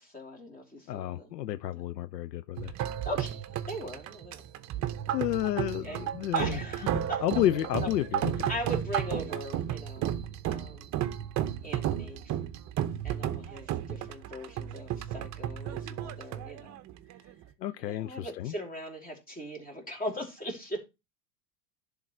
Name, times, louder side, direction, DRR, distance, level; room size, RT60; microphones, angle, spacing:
voice 1, 0.0-1.3 1.7-1.8 3.0-4.5 5.8-6.0 6.3-7.2 8.5-10.1 10.4-10.9 11.6-12.3 13.0-16.8 17.8-20.8, equal, 15° left, 3.0 m, -39 dB
voice 2, 0.9-2.7 5.1-6.6 7.0-8.5 17.6-18.5, left 13 dB, 85° left, 0.6 m, -31 dB
sound 1, 2.6-17.4, right 11 dB, 35° right, 0.8 m, -33 dB
11.0 x 3.7 x 4.4 m
hypercardioid pair, 90°, 48 cm